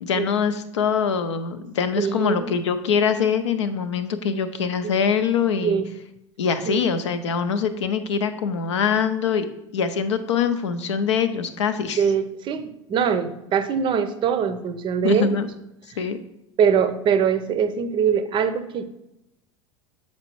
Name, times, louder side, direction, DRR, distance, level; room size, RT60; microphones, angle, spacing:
voice 1, 0.0-5.8 6.4-9.5 9.7-12.0 15.0-15.5 16.0-16.2, left 6 dB, 70° left, 11 dB, 0.5 m, -23 dB
voice 2, 2.0-2.5 4.8-5.0 5.6-5.9 6.6-6.8 12.0-15.4 16.6-18.8, right 7 dB, 30° right, 10 dB, 0.6 m, -23 dB
7.5 x 4.3 x 3.0 m, 0.85 s
figure-of-eight pair, 80°, 16 cm